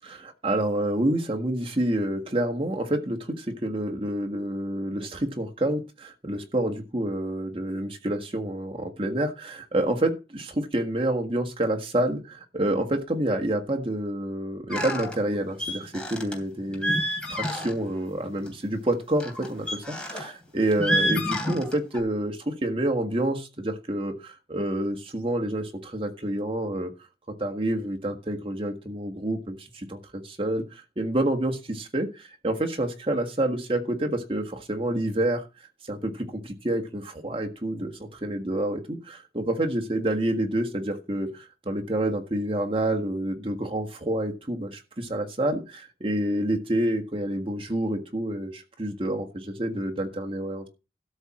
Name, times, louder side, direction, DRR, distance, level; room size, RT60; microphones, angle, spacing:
voice 1, 0.0-17.0 17.3-26.9 27.4-35.4 35.9-50.7, right 1 dB, 30° right, 4 dB, 1.6 m, -28 dB
sound 1, 14.7-15.2 15.6-16.3 16.7-17.9 18.2-18.5 19.2-20.3 20.7-22.0, equal, 5° left, 2.7 m, -28 dB
13.0 x 4.5 x 7.5 m, 0.30 s
head